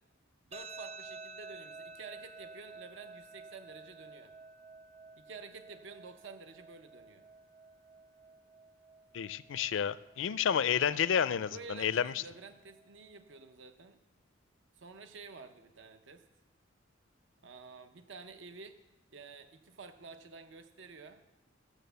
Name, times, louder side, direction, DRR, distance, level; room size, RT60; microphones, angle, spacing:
sound 1, 0.5-13.5, right 3 dB, 35° right, 0.8 m, -52 dB
voice 1, 0.5-4.3 5.2-7.3 11.5-14.0 14.8-16.2 17.4-18.8 19.1-21.2, right 4 dB, 70° right, 8 dB, 0.7 m, -50 dB
voice 2, 9.1-12.2, left 8 dB, 70° left, 17 dB, 0.4 m, -30 dB
14.0 x 7.0 x 6.9 m, 1.0 s
head